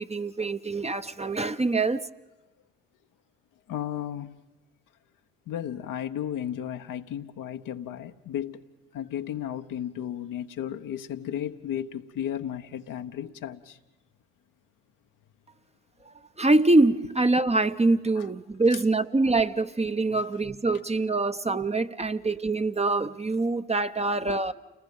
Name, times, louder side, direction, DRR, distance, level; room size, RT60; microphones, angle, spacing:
voice 1, 0.0-2.1 16.1-24.5, right 2 dB, 20° right, 1.0 m, -24 dB
voice 2, 3.7-4.3 5.5-8.6 8.9-13.8 18.7-18.8 20.1-20.2 24.2-24.4, left 10 dB, 65° left, 1.2 m, -34 dB
29.5 x 20.0 x 5.5 m
hypercardioid pair, 50°, 35 cm